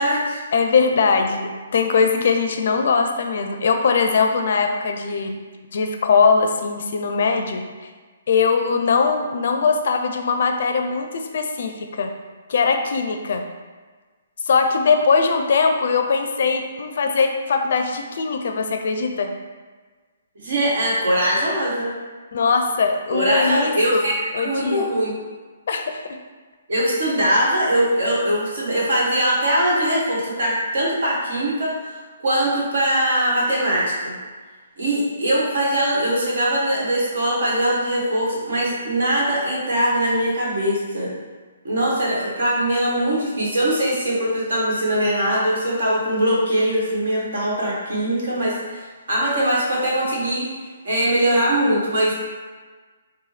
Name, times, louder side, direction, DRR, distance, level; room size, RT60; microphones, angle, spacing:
voice 1, 0.0-0.4 20.3-21.9 23.1-25.1 26.7-31.7 32.2-34.1 34.8-41.1 41.6-50.5 50.8-52.1, right 1 dB, 70° right, -5 dB, 1.3 m, -21 dB
voice 2, 0.5-5.4 5.7-7.6 8.3-12.1 12.5-13.4 14.5-19.3 22.3-24.1 24.3-24.9 25.7-25.9, left 5 dB, 60° left, 5 dB, 0.4 m, -20 dB
4.1 x 2.1 x 3.3 m, 1.4 s
hypercardioid pair, 140°, 0 cm